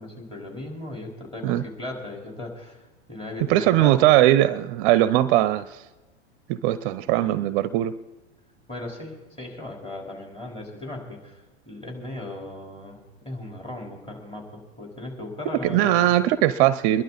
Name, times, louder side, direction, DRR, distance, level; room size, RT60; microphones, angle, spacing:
voice 1, 0.0-4.2 7.0-7.3 8.7-16.1, left 2 dB, 15° left, -1 dB, 4.2 m, -37 dB
voice 2, 3.5-5.8 6.5-8.0 15.6-17.0, right 14 dB, 50° right, 15 dB, 0.6 m, -20 dB
23.5 x 11.5 x 4.1 m, 1.1 s
hypercardioid pair, 100°, 35 cm